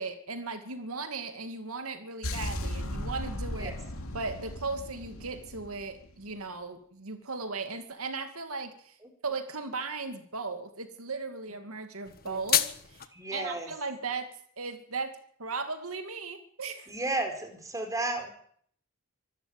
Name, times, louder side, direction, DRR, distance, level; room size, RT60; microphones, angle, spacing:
voice 1, 0.0-3.7 4.1-8.9 9.2-14.3 14.6-16.9, right 4 dB, 80° right, 8 dB, 2.4 m, -37 dB
sound 1, 2.2-6.3, left 1 dB, 80° left, 2.6 m, -36 dB
sound 2, 12.1-13.1, left 11 dB, 45° left, 1.5 m, -29 dB
voice 2, 13.1-13.7 16.9-18.3, right 2 dB, 15° right, 5 dB, 4.8 m, -33 dB
25.0 x 13.0 x 8.9 m, 0.62 s
head